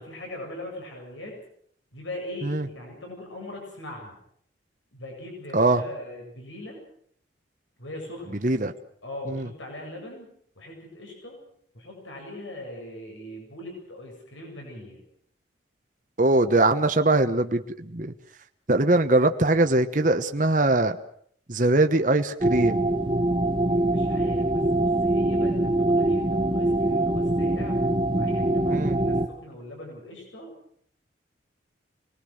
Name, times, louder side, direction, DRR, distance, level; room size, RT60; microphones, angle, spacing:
voice 1, 0.0-1.4 1.9-4.2 4.9-6.8 7.8-8.5 9.0-10.3 10.5-11.4 11.7-15.0 23.7-27.8 28.1-30.5, left 1 dB, 90° left, 1 dB, 7.9 m, -40 dB
voice 2, 16.2-18.1 18.7-21.0 21.5-22.9 28.7-29.0, right 2 dB, 40° right, 7 dB, 1.1 m, -21 dB
sound 1, 22.4-29.3, right 1 dB, 25° right, 1.5 m, -23 dB
26.5 x 21.0 x 6.6 m, 0.64 s
head